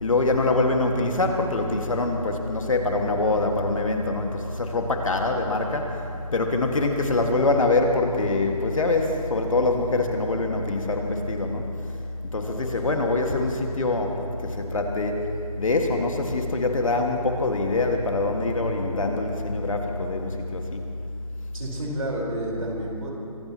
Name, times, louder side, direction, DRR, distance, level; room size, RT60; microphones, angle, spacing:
voice 1, 0.0-6.0 6.3-11.7 12.3-15.2 15.6-20.8, left 2 dB, 60° left, 3 dB, 1.8 m, -24 dB
voice 2, 12.3-12.9 21.5-23.1, right 1 dB, 60° right, -2 dB, 4.5 m, -31 dB
24.5 x 17.5 x 3.0 m, 2.6 s
figure-of-eight pair, 160°, 20 cm